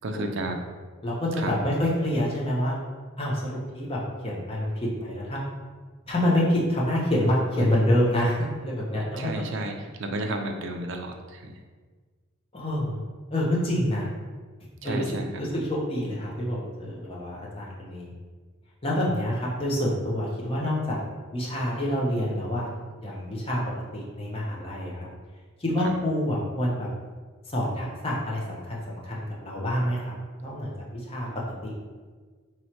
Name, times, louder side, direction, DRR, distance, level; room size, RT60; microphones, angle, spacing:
voice 1, 0.0-0.6 1.4-1.6 9.2-9.7 10.0-11.5 14.8-15.3, right 2 dB, 55° right, 4 dB, 0.4 m, -31 dB
voice 2, 1.0-2.8 3.2-5.4 6.1-9.4 12.5-13.0 13.3-14.1 14.8-18.1 18.8-21.0 21.3-22.7 23.0-23.6 23.9-25.1 25.6-26.9 27.5-30.1 30.4-31.3 31.6-31.7, left 1 dB, 25° left, -4 dB, 0.7 m, -27 dB
3.0 x 2.9 x 4.4 m, 1.5 s
head